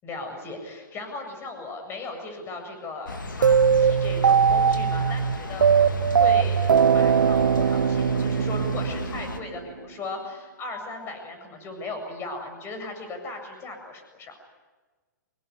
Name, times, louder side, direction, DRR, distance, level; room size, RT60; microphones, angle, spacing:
voice 1, 0.0-14.3, left 3 dB, 25° left, 6 dB, 7.6 m, -37 dB
sound 1, 3.0-9.4, left 3 dB, 85° left, 3.1 m, -35 dB
sound 2, 3.4-9.6, right 7 dB, 80° right, 0.9 m, -20 dB
26.5 x 22.0 x 9.8 m, 1.3 s
hypercardioid pair, 130°, 10 cm